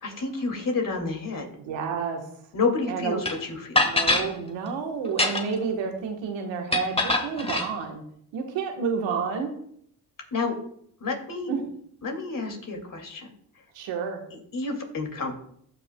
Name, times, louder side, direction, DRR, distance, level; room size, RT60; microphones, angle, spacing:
voice 1, 0.0-1.5 2.5-3.8 10.3-10.6 11.0-11.5 12.0-13.3 14.3-15.3, left 4 dB, 45° left, 3 dB, 2.3 m, -29 dB
voice 2, 1.6-2.2 2.9-3.2 3.8-8.0 8.3-9.5 11.5-11.6 13.7-14.2, right 6 dB, 85° right, 3 dB, 1.3 m, -30 dB
sound 1, 3.3-3.4 3.8-4.3 5.1-5.6 6.7-7.7, left 2 dB, 15° left, 1.4 m, -23 dB
15.5 x 5.2 x 2.2 m, 0.67 s
supercardioid pair, 55°, 44 cm